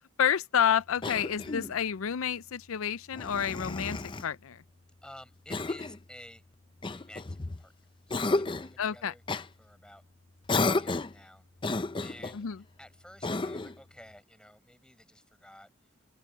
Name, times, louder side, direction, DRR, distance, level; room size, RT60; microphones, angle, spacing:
voice 1, 0.2-4.6 8.8-9.1 12.3-12.6, left 8 dB, 85° left, 0.5 m, -29 dB
Cough, 1.0-1.8 3.1-4.3 5.5-6.0 6.8-7.6 8.1-8.7 9.3-9.5 10.5-11.2 11.6-12.4 13.2-13.8, left 3 dB, 25° left, 0.5 m, -32 dB
voice 2, 5.0-6.4 6.9-9.2 9.6-10.0 10.5-11.4 12.0-12.4 12.8-15.7, left 1 dB, 5° left, 7.9 m, -53 dB
open air
head